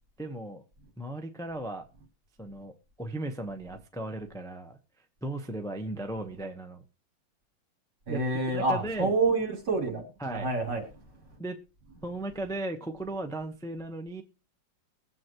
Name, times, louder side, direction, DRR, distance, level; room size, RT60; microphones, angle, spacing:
voice 1, 0.2-0.6 1.0-1.9 2.4-4.8 5.2-6.8 8.1-9.1 10.2-10.5 11.4-11.6 12.0-14.2, right 1 dB, 5° left, 0.5 m, -36 dB
voice 2, 8.1-10.8, right 3 dB, 55° right, 4.1 m, -28 dB
22.5 x 7.9 x 3.0 m
omnidirectional pair, 2.2 m